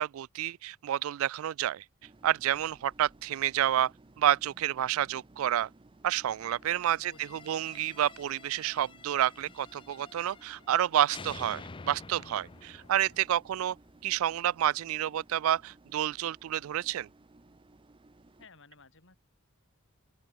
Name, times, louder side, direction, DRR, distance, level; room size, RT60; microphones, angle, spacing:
voice 1, 0.0-1.8 2.2-3.9 4.2-5.7 6.0-7.1 7.5-13.8 14.0-17.1, right 11 dB, 65° right, 0.3 m, -29 dB
sound 1, 2.0-18.5, right 2 dB, 25° right, 0.6 m, -59 dB
sound 2, 6.1-13.2, left 3 dB, 80° left, 3.2 m, -65 dB
voice 2, 7.0-7.6 18.4-19.2, left 4 dB, 60° left, 5.0 m, -57 dB
sound 3, 7.0-10.8 11.1-14.1, left 4 dB, 25° left, 0.6 m, -49 dB
open air
head